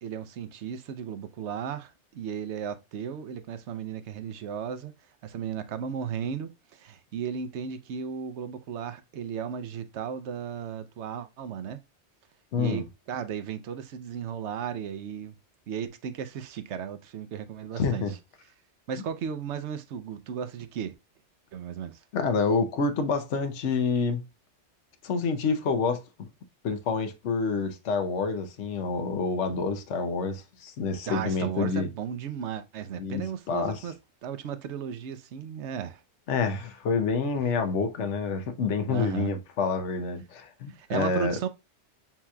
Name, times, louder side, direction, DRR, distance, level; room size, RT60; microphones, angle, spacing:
voice 1, 0.0-4.9 5.2-11.8 12.6-15.4 15.7-18.1 18.9-20.9 21.5-22.0 31.1-33.9 34.2-36.0 38.9-39.3 40.7-41.5, right 8 dB, 75° right, 0.9 m, -35 dB
voice 2, 12.5-12.8 17.8-18.1 22.1-24.2 25.0-26.3 26.6-31.9 33.0-33.8 36.3-41.4, left 4 dB, 75° left, 1.1 m, -28 dB
7.2 x 2.9 x 2.2 m
omnidirectional pair, 1.2 m